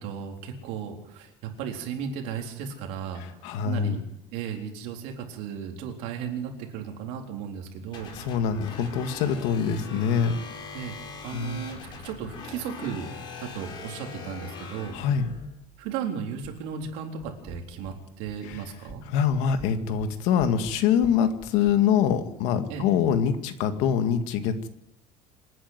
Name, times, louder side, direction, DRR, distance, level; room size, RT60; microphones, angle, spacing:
voice 1, 0.0-3.2 3.6-4.0 4.3-8.1 10.7-11.0 11.2-13.1 13.4-15.0 15.8-19.0 22.7-22.8, right 7 dB, 65° right, 2 dB, 4.0 m, -35 dB
voice 2, 3.4-4.0 8.2-10.4 11.3-11.6 14.9-15.3 18.5-18.6 19.1-24.7, left 8 dB, 60° left, 8 dB, 2.0 m, -24 dB
sound 1, 7.9-15.5, left 4 dB, 35° left, 4.7 m, -41 dB
sound 2, 16.4-16.9 17.2-18.0 18.2-19.0 19.3-21.8, right 2 dB, 5° right, 3.9 m, -44 dB
27.0 x 10.0 x 9.6 m, 0.83 s
cardioid pair, 180°, 13 cm